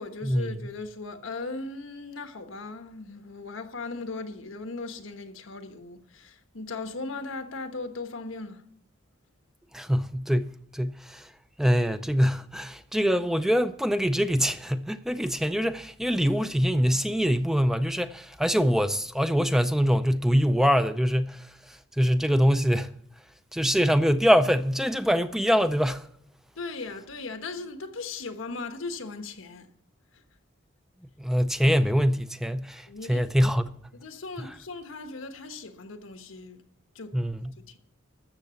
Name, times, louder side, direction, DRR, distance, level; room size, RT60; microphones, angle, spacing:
voice 1, 0.0-8.7 26.5-29.7 30.1-30.2 32.9-33.3 33.9-36.6 36.9-37.2 37.6-37.8, left 3 dB, 90° left, 1.2 m, -38 dB
voice 2, 9.7-11.3 11.6-22.9 23.5-26.1 31.2-33.7 37.1-37.5, equal, ahead, 0.4 m, -24 dB
13.0 x 7.4 x 6.9 m
head